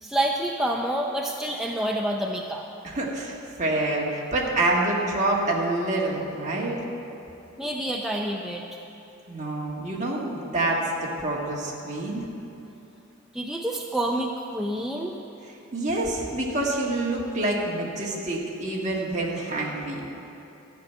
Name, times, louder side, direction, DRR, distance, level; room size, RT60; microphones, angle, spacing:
voice 1, 0.0-2.7 7.6-8.6 13.3-15.2, right 1 dB, ahead, 0 dB, 0.4 m, -28 dB
voice 2, 2.8-6.8 9.3-12.2 15.7-20.0, right 2 dB, 35° right, -3 dB, 1.7 m, -27 dB
12.5 x 6.0 x 9.3 m, 2.9 s
head